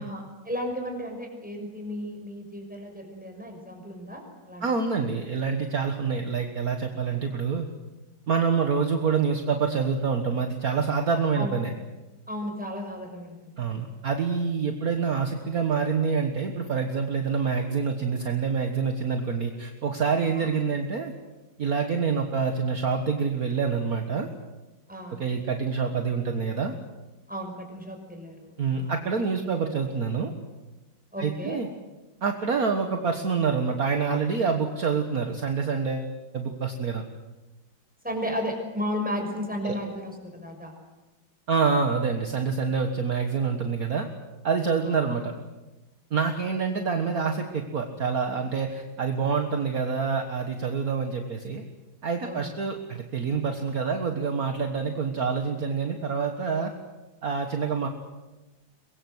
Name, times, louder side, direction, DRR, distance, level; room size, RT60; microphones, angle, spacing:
voice 1, 0.0-4.2 4.5-4.7 11.4-11.6 12.3-13.5 20.2-20.5 24.9-25.2 27.3-28.9 31.1-31.6 38.0-40.7 44.9-45.2 52.2-52.4, equal, 5° right, 2 dB, 6.1 m, -34 dB
voice 2, 4.6-7.7 8.3-11.7 13.6-21.1 21.6-24.3 25.1-26.7 28.6-30.3 31.2-31.7 32.2-37.0 39.6-39.8 41.5-44.1 44.4-45.3 46.1-51.6 52.0-56.7 57.2-57.9, right 5 dB, 50° right, 5 dB, 1.9 m, -26 dB
23.5 x 22.0 x 8.0 m, 1.1 s
omnidirectional pair, 2.1 m